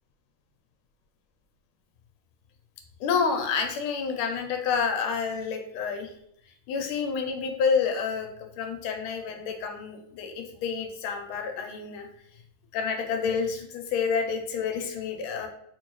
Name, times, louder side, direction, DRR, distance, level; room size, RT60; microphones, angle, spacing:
voice 1, 3.0-6.1 6.7-8.3 8.6-12.1 12.7-15.5, left 6 dB, 85° left, 4 dB, 1.5 m, -29 dB
4.0 x 2.6 x 3.0 m, 0.70 s
omnidirectional pair, 2.3 m